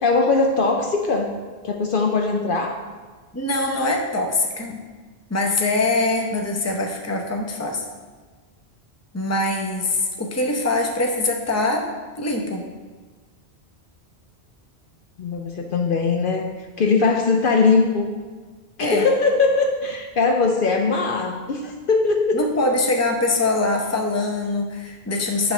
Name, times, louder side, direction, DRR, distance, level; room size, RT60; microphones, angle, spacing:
voice 1, 0.0-1.3 1.6-2.8 15.2-16.5 16.8-18.1 18.8-22.5, left 4 dB, 60° left, 4 dB, 0.7 m, -20 dB
voice 2, 3.3-4.8 5.3-7.8 9.1-11.9 12.2-12.7 18.8-19.1 22.3-25.5, left 2 dB, 15° left, 1 dB, 0.7 m, -23 dB
8.7 x 3.3 x 6.1 m, 1.4 s
omnidirectional pair, 1.1 m